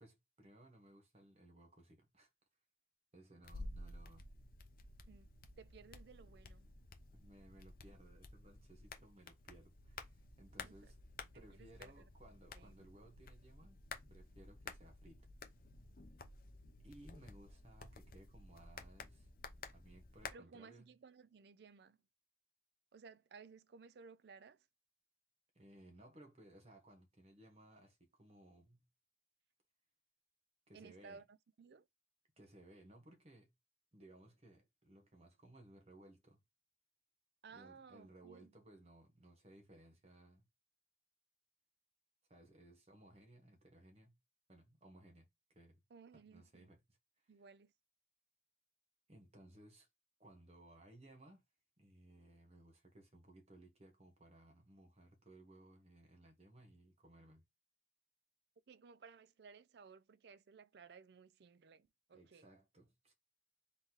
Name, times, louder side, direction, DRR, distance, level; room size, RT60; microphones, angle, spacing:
voice 1, 0.0-2.3 3.1-4.3 7.1-11.0 11.3-13.8 14.1-15.5 16.8-19.3 19.6-20.9 25.5-28.8 30.7-31.2 32.4-33.5 33.9-36.4 37.5-40.4 42.3-44.2 44.5-45.8 46.1-47.4 49.1-49.9 50.2-51.4 51.8-57.5 62.1-63.1, right 1 dB, 35° right, 1.3 m, -61 dB
sound 1, 3.4-20.3, left 3 dB, 50° left, 0.7 m, -53 dB
voice 2, 5.6-6.7 10.6-10.7 11.6-11.9 12.6-12.9 20.3-22.0 22.9-24.6 30.7-31.2 31.6-31.8 37.4-38.5 45.9-46.7 47.3-47.7 58.7-62.4, right 5 dB, 60° right, 0.4 m, -58 dB
3.9 x 3.8 x 3.1 m
head